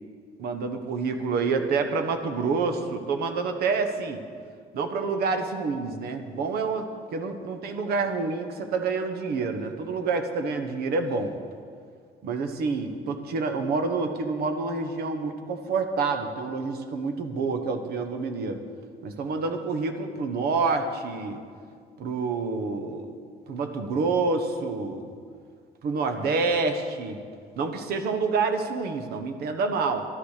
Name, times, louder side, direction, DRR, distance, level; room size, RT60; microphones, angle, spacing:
voice 1, 0.4-4.2 4.7-11.3 12.2-18.6 19.0-21.4 22.0-23.1 23.5-25.1 25.8-27.2 27.6-30.0, right 4 dB, 70° right, 6 dB, 1.3 m, -28 dB
12.0 x 10.5 x 6.6 m, 2.1 s
cardioid pair, 110°, 17 cm